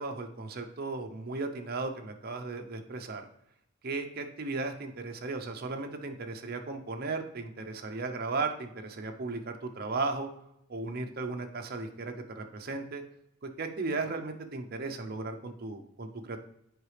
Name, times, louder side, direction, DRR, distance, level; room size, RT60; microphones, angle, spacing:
voice 1, 0.0-3.2 3.8-10.3 10.7-13.0 13.4-16.4, right 3 dB, 50° right, 5 dB, 0.7 m, -36 dB
8.0 x 4.8 x 3.3 m, 0.78 s
head